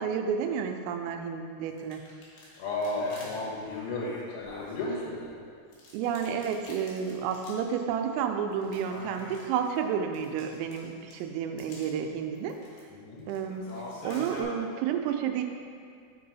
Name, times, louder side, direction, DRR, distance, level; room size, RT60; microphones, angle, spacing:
voice 1, 0.0-2.0 5.9-12.6 13.3-15.4, right 7 dB, 85° right, 5 dB, 3.1 m, -31 dB
sound 1, 1.7-5.3 5.7-7.7 7.9-8.0 8.5-11.2 11.6-11.9 12.3-12.8 13.2-14.4, left 1 dB, 75° left, 2.1 m, -45 dB
voice 2, 2.6-5.3 12.9-13.2, left 2 dB, 90° left, -3 dB, 4.0 m, -33 dB
7.6 x 5.4 x 4.0 m, 2.2 s
omnidirectional pair, 5.9 m